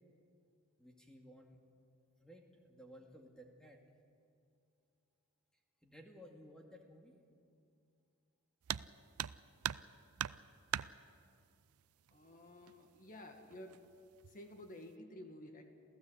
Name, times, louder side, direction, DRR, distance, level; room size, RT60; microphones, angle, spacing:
voice 1, 0.8-1.6 2.2-3.8 5.8-7.2, equal, 5° left, 1 dB, 2.2 m, -57 dB
sound 1, 8.7-8.9 9.2-9.9 10.2-10.9 12.1-12.2 12.7-12.8 13.5-13.9 14.2-14.6, right 10 dB, 85° right, 0.5 m, -39 dB
voice 2, 12.1-13.8 14.2-15.6, left 1 dB, 40° left, 5 dB, 1.8 m, -52 dB
28.0 x 15.0 x 8.0 m, 2.4 s
head